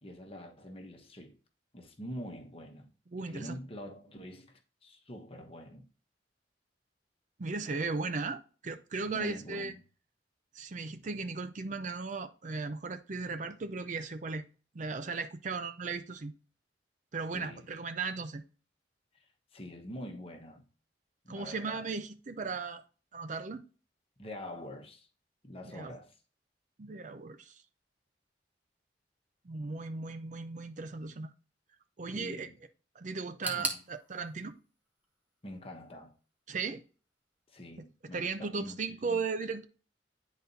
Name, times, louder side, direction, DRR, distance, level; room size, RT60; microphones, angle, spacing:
voice 1, 0.0-1.4 1.7-2.9 3.2-5.9 9.0-9.7 17.3-17.7 19.1-19.3 19.5-20.6 21.2-21.9 24.2-25.1 25.4-26.1 32.1-32.6 33.5-33.8 35.4-36.1 37.5-39.2, equal, 35° left, 1.2 m, -45 dB
voice 2, 3.1-3.6 7.4-9.7 10.6-14.4 14.7-16.3 17.1-18.4 21.3-22.8 23.1-23.6 25.6-26.0 26.8-27.6 29.4-31.3 32.0-32.5 33.0-34.5 36.5-36.8 38.1-39.7, right 4 dB, 45° right, 0.5 m, -36 dB
sound 1, 33.4-36.3 36.5-37.4 37.7-37.8 38.6-38.7, right 1 dB, 10° right, 1.1 m, -41 dB
10.5 x 4.1 x 2.7 m
head